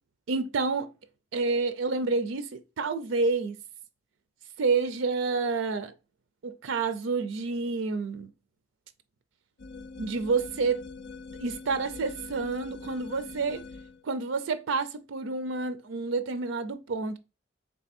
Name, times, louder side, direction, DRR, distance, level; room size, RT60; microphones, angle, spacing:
voice 1, 0.3-0.9 1.3-3.6 4.6-5.9 6.4-8.3 10.0-10.8 11.4-13.6 14.0-17.2, right 4 dB, 90° right, 0.5 m, -29 dB
sound 1, 9.6-14.0, left 3 dB, 65° left, 0.5 m, -43 dB
3.4 x 3.3 x 4.2 m
head